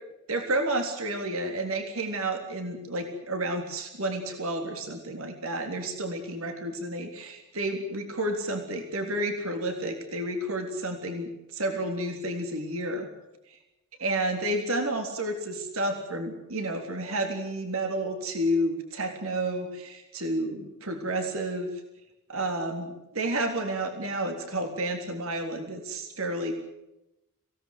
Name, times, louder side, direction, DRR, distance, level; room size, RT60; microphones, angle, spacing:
voice 1, 0.3-13.1 14.0-21.7 22.3-26.5, right 1 dB, 75° right, 4 dB, 3.5 m, -31 dB
26.0 x 18.0 x 7.9 m, 0.93 s
head